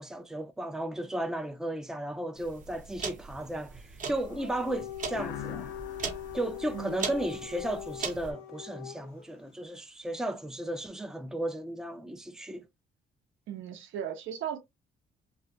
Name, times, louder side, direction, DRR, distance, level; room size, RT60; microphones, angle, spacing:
voice 1, 0.0-5.7 6.3-12.7, right 1 dB, 5° right, 0.3 m, -35 dB
sound 1, 2.4-8.3, right 5 dB, 40° right, 0.7 m, -40 dB
Dog, 4.1-9.3, left 11 dB, 90° left, 0.8 m, -42 dB
sound 2, 5.1-7.8, left 9 dB, 60° left, 0.4 m, -44 dB
voice 2, 6.7-7.0 13.5-14.6, right 9 dB, 80° right, 0.7 m, -37 dB
2.3 x 2.1 x 2.7 m
cardioid pair, 90°, 20 cm